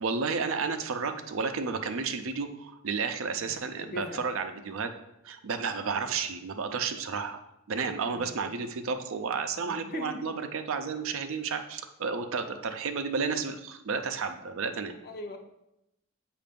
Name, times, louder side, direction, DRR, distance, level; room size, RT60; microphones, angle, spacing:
voice 1, 0.0-4.9 5.2-7.4 7.7-14.9, right 5 dB, 70° right, 7 dB, 0.5 m, -32 dB
voice 2, 3.2-4.2 8.1-8.4 9.7-10.2 15.0-15.4, left 3 dB, 45° left, 4 dB, 0.6 m, -41 dB
7.5 x 2.5 x 5.2 m, 0.86 s
head